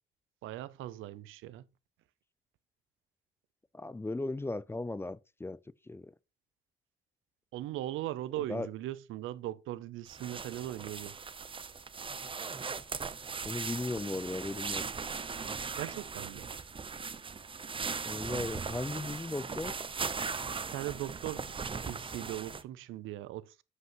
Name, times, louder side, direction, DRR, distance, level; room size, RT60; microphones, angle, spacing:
voice 1, 0.4-1.6 7.5-11.1 15.8-16.5 20.7-21.4 21.8-23.4, right 14 dB, 90° right, 0.6 m, -39 dB
voice 2, 3.7-5.6 5.9-6.1 8.4-8.7 13.4-14.8 18.0-19.7, left 2 dB, 10° left, 0.4 m, -36 dB
sound 1, 10.1-22.6, right 5 dB, 25° right, 0.6 m, -39 dB
8.0 x 7.9 x 3.0 m
cardioid pair, 90°, 20 cm